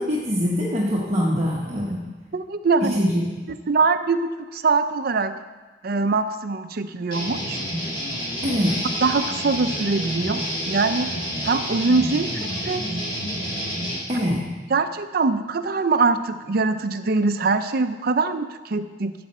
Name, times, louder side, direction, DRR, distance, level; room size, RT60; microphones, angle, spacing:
voice 1, 0.0-2.0 2.8-3.3 8.4-8.8 14.1-14.4, equal, 35° right, -5 dB, 1.2 m, -23 dB
voice 2, 2.3-3.0 3.7-5.4 5.8-7.6 9.0-11.1 11.4-12.8 14.7-19.1, right 4 dB, 55° right, 9 dB, 0.6 m, -23 dB
sound 1, 7.1-14.0, equal, 25° left, 2.8 m, -29 dB
12.5 x 7.7 x 4.2 m, 1.3 s
head